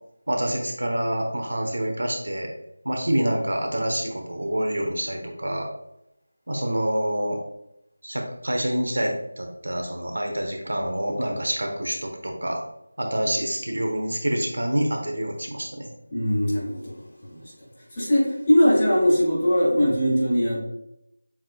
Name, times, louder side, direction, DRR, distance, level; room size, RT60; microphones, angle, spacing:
voice 1, 0.3-2.5 2.8-5.7 6.5-7.4 8.0-12.6 13.0-15.9, right 1 dB, 80° right, 2 dB, 1.0 m, -27 dB
voice 2, 16.1-17.4 17.9-20.6, equal, 10° left, -12 dB, 1.6 m, -21 dB
7.3 x 2.9 x 2.3 m, 0.83 s
figure-of-eight pair, 180°, 0 cm